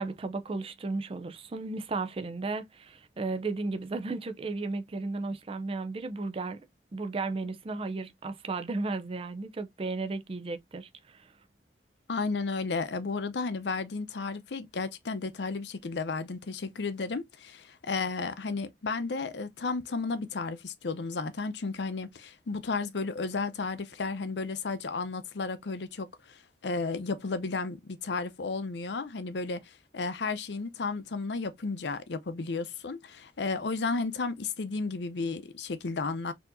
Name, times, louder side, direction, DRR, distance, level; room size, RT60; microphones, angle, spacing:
voice 1, 0.0-6.6 6.9-11.3, right 3 dB, 30° right, 0.4 m, -34 dB
voice 2, 12.1-36.3, left 4 dB, 75° left, 0.6 m, -33 dB
4.4 x 2.8 x 2.6 m
head